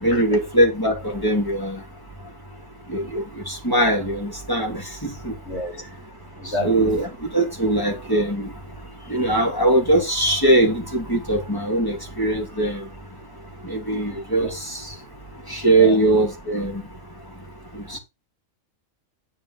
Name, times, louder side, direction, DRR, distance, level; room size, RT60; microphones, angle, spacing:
voice 1, 0.0-1.8 2.9-4.8 5.2-5.3 6.6-7.1 7.3-8.5 9.1-12.8 13.7-14.5 15.5-16.8, right 2 dB, 15° left, 2.9 m, -21 dB
voice 2, 5.5-5.8 6.4-6.9 14.1-14.5 15.8-16.0 17.9-18.0, left 1 dB, 55° left, 2.6 m, -30 dB
10.0 x 4.6 x 5.6 m
omnidirectional pair, 1.4 m